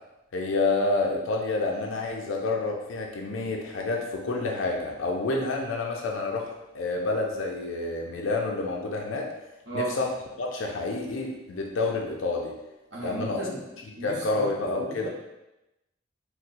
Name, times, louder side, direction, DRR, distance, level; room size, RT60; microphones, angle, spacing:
voice 1, 0.3-9.3 9.7-10.1 10.4-12.5 13.0-13.4 14.0-15.1, left 3 dB, 80° left, 0 dB, 0.5 m, -28 dB
voice 2, 12.9-13.6 13.9-14.5 14.7-15.1, right 3 dB, 70° right, -5 dB, 0.9 m, -35 dB
4.1 x 2.1 x 2.5 m, 0.94 s
head